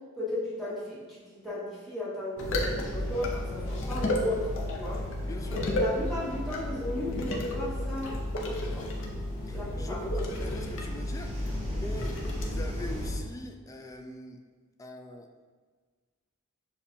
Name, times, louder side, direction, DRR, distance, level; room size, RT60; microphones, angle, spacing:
voice 1, 0.2-5.1 5.5-8.1 8.4-8.9 9.5-10.1, left 1 dB, ahead, -10 dB, 1.0 m, -35 dB
sound 1, 2.4-13.2, left 1 dB, 65° left, 0.6 m, -32 dB
sound 2, 2.6-13.1, equal, 30° right, 0.8 m, -42 dB
voice 2, 5.2-5.6 9.4-14.4 14.8-15.3, left 1 dB, 15° left, 4 dB, 0.3 m, -42 dB
6.8 x 2.3 x 2.7 m, 1.4 s
head